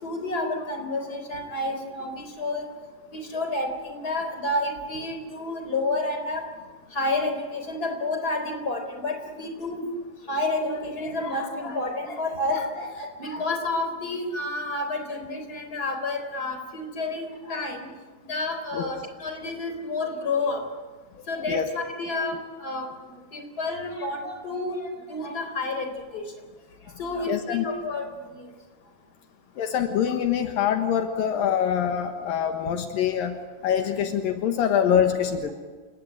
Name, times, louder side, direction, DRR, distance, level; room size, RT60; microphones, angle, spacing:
voice 1, 0.0-2.7 3.1-6.4 6.9-9.8 10.3-17.9 18.2-20.6 21.3-22.9 23.3-26.2 27.0-28.4, left 2 dB, 25° left, 5 dB, 4.3 m, -30 dB
voice 2, 27.3-27.6 29.6-35.5, left 8 dB, 75° left, 6 dB, 3.0 m, -24 dB
29.0 x 19.0 x 9.2 m, 1.4 s
omnidirectional pair, 4.1 m